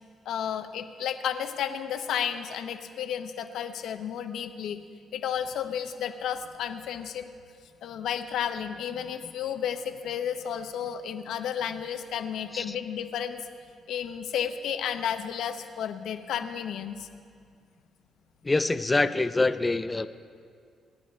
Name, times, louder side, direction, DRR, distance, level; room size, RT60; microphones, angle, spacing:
voice 1, 0.3-4.8 5.1-7.3 7.8-13.5 13.9-17.1, left 8 dB, 80° left, 8 dB, 0.8 m, -32 dB
voice 2, 18.4-20.1, left 2 dB, 20° left, 12 dB, 0.5 m, -25 dB
25.5 x 10.5 x 3.2 m, 2.1 s
cardioid pair, 90°, 0 cm